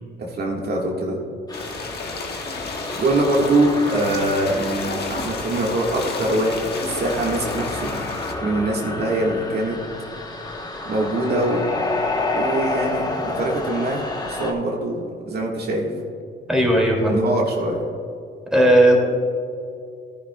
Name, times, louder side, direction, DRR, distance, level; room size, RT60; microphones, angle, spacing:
voice 1, 0.3-1.2 2.9-7.9 8.4-9.8 10.8-11.6 12.3-15.9 17.1-17.8, right 1 dB, 55° right, -2 dB, 1.6 m, -23 dB
sound 1, 1.5-8.3, left 3 dB, 55° left, 1.5 m, -32 dB
sound 2, 1.5-14.5, left 2 dB, 20° left, 1.1 m, -30 dB
voice 2, 16.5-17.2 18.5-19.0, right 1 dB, 5° right, -2 dB, 2.5 m, -16 dB
14.0 x 10.5 x 2.3 m, 2.5 s
cardioid pair, 90°, 20 cm